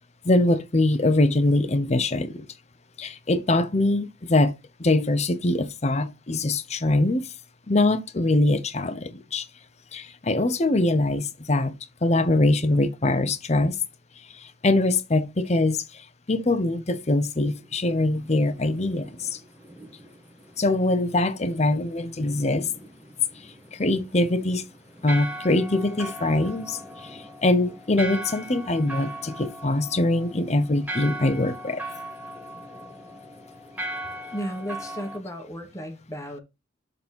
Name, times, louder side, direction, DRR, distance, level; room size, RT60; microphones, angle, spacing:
voice 1, 0.2-2.5 3.0-4.5 4.8-7.3 7.7-9.5 9.9-11.7 12.0-13.8 14.6-16.0 16.3-19.4 20.6-22.7 23.7-24.6 25.0-31.8, left 2 dB, 35° left, 0.8 m, -23 dB
sound 1, 17.5-35.2, right 1 dB, 10° right, 1.5 m, -39 dB
voice 2, 34.3-36.4, equal, 15° left, 1.3 m, -34 dB
7.1 x 4.0 x 5.3 m
head